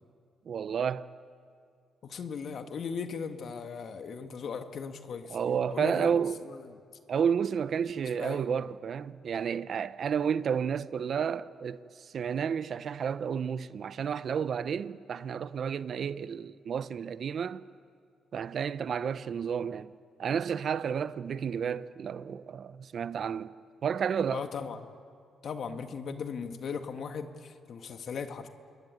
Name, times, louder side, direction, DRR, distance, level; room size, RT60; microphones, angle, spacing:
voice 1, 0.4-1.1 5.3-6.3 7.1-17.6 18.3-19.9 20.2-23.5 23.8-24.4, right 7 dB, 60° right, 0.8 m, -31 dB
voice 2, 2.0-5.4 5.7-6.2 6.5-6.8 8.2-8.4 24.3-24.8 25.4-28.5, left 6 dB, 60° left, 1.8 m, -38 dB
27.5 x 22.0 x 9.2 m
cardioid pair, 95°, 0 cm